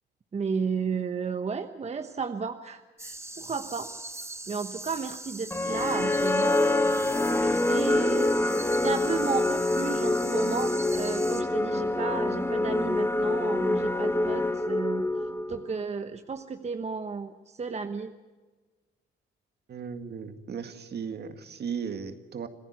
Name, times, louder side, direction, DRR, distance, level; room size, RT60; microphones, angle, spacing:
voice 1, 0.3-3.9 4.5-7.0 7.4-8.3 8.8-15.1 15.5-18.1, right 5 dB, 35° right, 8 dB, 1.1 m, -33 dB
sound 1, 3.0-11.4, right 2 dB, 15° right, 1.8 m, -41 dB
sound 2, 5.5-15.7, left 2 dB, 10° left, 1.1 m, -26 dB
voice 2, 19.7-22.5, right 6 dB, 55° right, 8 dB, 2.0 m, -36 dB
26.5 x 15.0 x 8.3 m, 1.3 s
cardioid pair, 90°, 20 cm